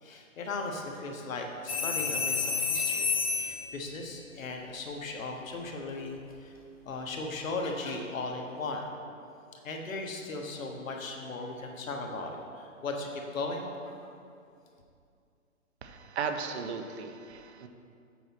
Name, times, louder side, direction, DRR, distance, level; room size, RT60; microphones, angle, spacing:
voice 1, 0.0-3.1 3.4-6.6 6.8-8.8 9.6-14.1, left 3 dB, 70° left, 2 dB, 1.4 m, -37 dB
sound 1, 1.7-3.7 6.1-6.3, left 5 dB, 25° left, 0.5 m, -29 dB
voice 2, 15.8-17.7, right 6 dB, 50° right, 6 dB, 0.7 m, -36 dB
7.9 x 6.0 x 4.2 m, 2.4 s
hypercardioid pair, 160°, 42 cm